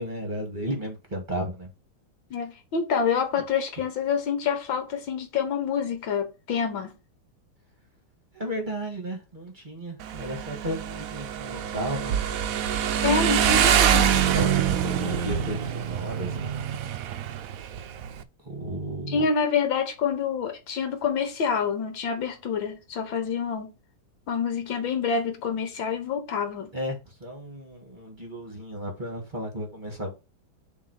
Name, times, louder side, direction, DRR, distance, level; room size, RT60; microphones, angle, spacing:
voice 1, 0.0-1.7 8.3-12.1 14.3-16.6 18.4-19.3 26.7-30.1, equal, 25° right, 2.0 m, -34 dB
voice 2, 2.3-6.9 13.0-14.1 19.1-23.7 24.3-26.7, left 6 dB, 70° left, 2.0 m, -27 dB
Motorcycle, 10.0-18.2, right 9 dB, 65° right, 0.8 m, -25 dB
7.3 x 3.9 x 6.5 m
omnidirectional pair, 2.2 m